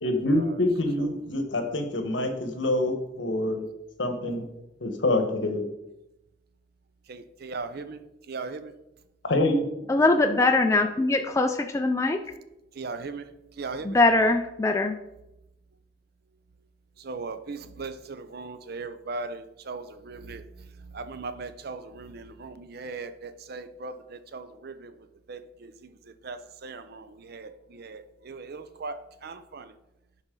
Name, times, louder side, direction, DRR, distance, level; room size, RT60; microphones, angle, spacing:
voice 1, 0.0-3.6 4.0-4.4 4.8-5.7 9.2-9.6, left 1 dB, 80° left, 1.1 m, -26 dB
voice 2, 7.1-8.0 8.3-8.7 12.7-13.3 13.6-14.0 17.0-24.9 25.3-25.9 26.2-29.7, right 3 dB, 55° right, 0.6 m, -38 dB
voice 3, 9.9-12.2 13.8-15.0, left 2 dB, 15° left, 0.3 m, -22 dB
11.0 x 4.2 x 3.8 m
head